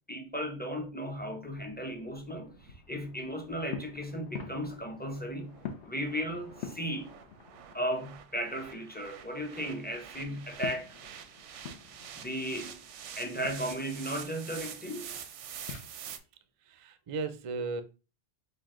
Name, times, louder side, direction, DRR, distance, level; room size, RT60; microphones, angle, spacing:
voice 1, 0.1-5.6 5.8-7.1 7.7-11.0 12.1-12.8 13.2-15.2, equal, 15° left, 0.4 m, -36 dB
sound 1, 1.4-8.1 8.4-15.9, left 7 dB, 75° left, 1.0 m, -47 dB
sound 2, 1.5-16.2, right 8 dB, 85° right, 0.9 m, -47 dB
voice 2, 16.6-17.8, right 4 dB, 50° right, 0.4 m, -35 dB
6.4 x 2.2 x 3.7 m
omnidirectional pair, 1.2 m